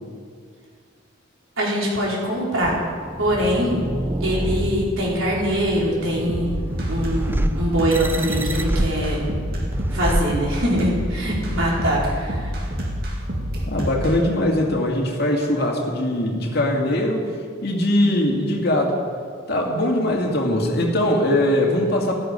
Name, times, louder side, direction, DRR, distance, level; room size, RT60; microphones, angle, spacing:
voice 1, 1.6-2.8 3.2-3.8 4.2-6.5 6.9-9.2 9.9-12.5, equal, 75° right, -4 dB, 4.5 m, -23 dB
sound 1, 2.6-11.0, right 1 dB, 10° right, 0.4 m, -28 dB
sound 2, 6.3-14.1, equal, 50° right, 2.2 m, -27 dB
voice 2, 13.7-17.3 17.6-19.0 19.5-22.2, left 1 dB, 50° left, -1 dB, 2.2 m, -21 dB
14.5 x 12.5 x 5.3 m, 2.1 s
head